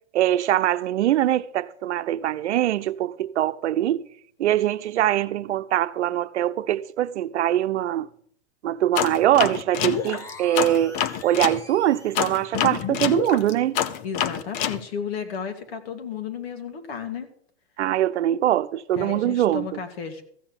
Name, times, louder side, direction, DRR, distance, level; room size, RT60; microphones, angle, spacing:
voice 1, 0.1-4.1 4.4-8.1 8.6-13.8 17.8-19.7, right 12 dB, 80° right, 0.8 m, -23 dB
sound 1, 8.9-11.6 12.1-14.8, left 9 dB, 40° left, 0.8 m, -26 dB
sound 2, 9.8-12.5, left 1 dB, 10° left, 0.8 m, -44 dB
voice 2, 14.0-17.3 19.0-20.2, left 7 dB, 60° left, 2.5 m, -33 dB
14.5 x 7.0 x 7.3 m
supercardioid pair, 145°, 34 cm